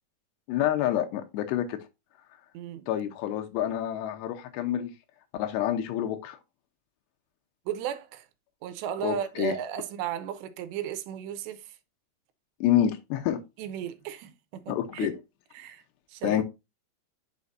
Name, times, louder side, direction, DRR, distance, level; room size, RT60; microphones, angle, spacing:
voice 1, 0.5-1.8 2.9-4.9 5.3-6.4 9.0-9.6 12.6-13.4 14.7-15.1 16.2-16.4, left 11 dB, 90° left, 3.0 m, -27 dB
voice 2, 2.5-2.9 7.7-8.3 8.6-11.8 13.6-15.1 15.5-15.8 16.1-16.4, right 9 dB, 85° right, 3.0 m, -35 dB
9.5 x 5.8 x 2.6 m
omnidirectional pair, 4.9 m